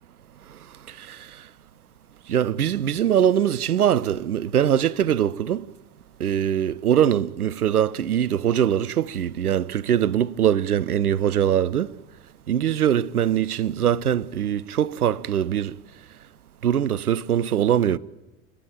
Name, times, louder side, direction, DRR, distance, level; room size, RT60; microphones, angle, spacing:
voice 1, 0.9-1.3 2.3-5.7 6.2-12.0 12.5-15.8 16.6-18.0, right 9 dB, 85° right, 0.6 m, -22 dB
29.5 x 11.5 x 8.9 m
figure-of-eight pair, 75°, 43 cm